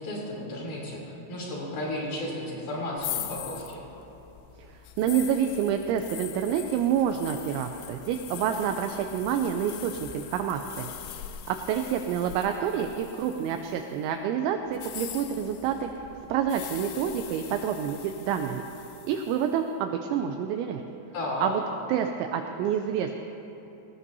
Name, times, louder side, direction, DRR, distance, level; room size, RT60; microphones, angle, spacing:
voice 1, 0.0-3.8 21.1-21.5, left 1 dB, 45° left, -4 dB, 4.3 m, -33 dB
sound 1, 3.0-13.9 14.7-19.5, left 12 dB, 80° left, 2.9 m, -42 dB
voice 2, 4.6-10.9 11.5-15.9 16.3-18.7 19.0-20.8 21.4-21.6 21.9-23.1, right 8 dB, 85° right, 5 dB, 2.7 m, -28 dB
20.5 x 19.0 x 2.7 m, 3.0 s
omnidirectional pair, 5.7 m